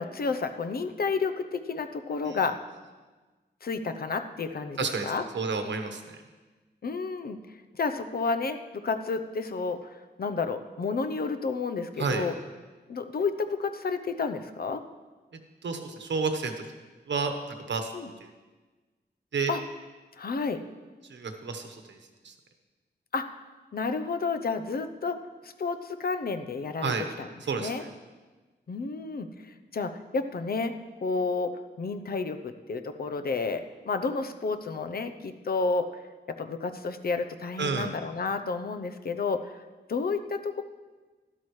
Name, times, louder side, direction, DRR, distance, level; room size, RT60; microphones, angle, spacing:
voice 1, 0.0-2.6 3.6-4.8 5.1-5.2 6.8-7.4 7.7-9.9 10.2-12.3 12.9-14.8 17.9-18.1 19.5-19.6 20.2-20.6 23.1-23.3 23.7-25.2 25.4-26.9 27.2-27.3 27.6-27.8 28.7-30.7 31.0-31.5 31.8-35.9 36.4-39.6 39.9-40.6, left 4 dB, 55° left, 9 dB, 0.7 m, -31 dB
voice 2, 4.8-6.2 12.0-12.2 15.6-16.7 17.1-17.3 17.7-17.9 18.2-18.3 19.3-19.5 21.1-22.0 22.2-22.3 26.8-27.1 27.4-27.9 37.6-38.0, right 4 dB, 90° right, 6 dB, 1.1 m, -30 dB
13.0 x 12.5 x 3.2 m, 1.3 s
wide cardioid pair, 125°, 18 cm